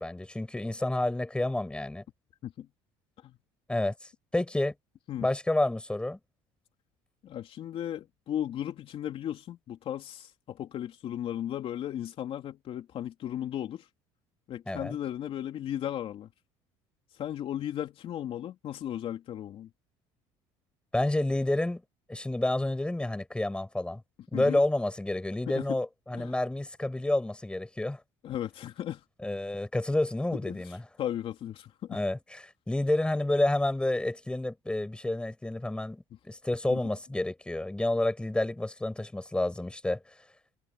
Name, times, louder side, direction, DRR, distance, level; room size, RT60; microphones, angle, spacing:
voice 1, 0.0-2.0 3.7-3.9 4.3-4.8 5.2-6.2 14.7-15.0 20.9-21.8 22.1-24.0 24.3-28.0 29.2-30.8 31.9-32.4 32.7-40.0, left 1 dB, 10° left, 6.2 m, -29 dB
voice 2, 7.2-13.9 14.5-16.3 17.1-19.7 24.3-24.6 25.5-25.8 26.1-26.4 28.2-29.0 30.3-32.0 36.7-36.8, left 11 dB, 55° left, 3.1 m, -36 dB
supercardioid pair, 95°, 12 cm